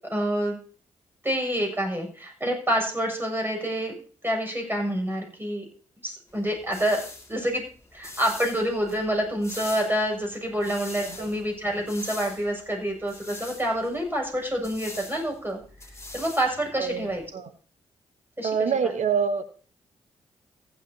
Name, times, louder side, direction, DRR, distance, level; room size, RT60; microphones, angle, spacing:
voice 1, 0.1-0.6 1.2-3.9 4.2-5.6 6.0-7.0 7.3-7.6 7.9-15.6 16.1-17.2 18.4-18.9, equal, 15° right, 1 dB, 7.4 m, -27 dB
sound 1, 6.3-17.3, left 2 dB, 20° left, 2.6 m, -44 dB
voice 2, 11.0-11.3 16.8-17.5 18.4-19.4, right 6 dB, 65° right, 11 dB, 1.3 m, -26 dB
15.0 x 12.0 x 2.9 m, 0.41 s
hypercardioid pair, 40°, 13 cm